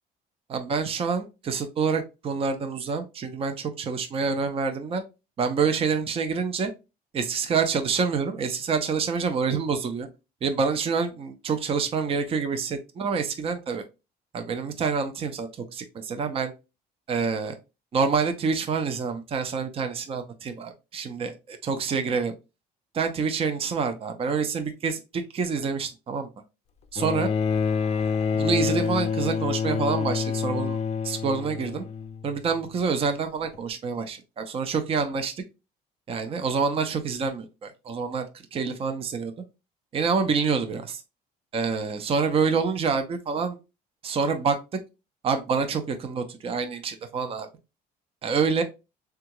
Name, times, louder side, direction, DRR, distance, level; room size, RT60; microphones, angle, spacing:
voice 1, 0.5-5.0 5.4-6.7 7.1-10.1 10.4-13.8 14.3-16.5 17.1-17.6 17.9-22.3 22.9-26.3 26.9-27.3 28.3-30.8 31.0-31.9 32.2-35.3 36.1-38.2 38.5-39.3 39.9-41.0 41.5-43.6 44.0-44.6 45.2-47.5 48.2-48.6, right 5 dB, 35° right, 7 dB, 0.5 m, -27 dB
Bowed string instrument, 27.0-32.4 33.5-33.6, left 5 dB, 40° left, 0.4 m, -27 dB
3.5 x 2.3 x 2.9 m, 0.27 s
cardioid pair, 110°, 17 cm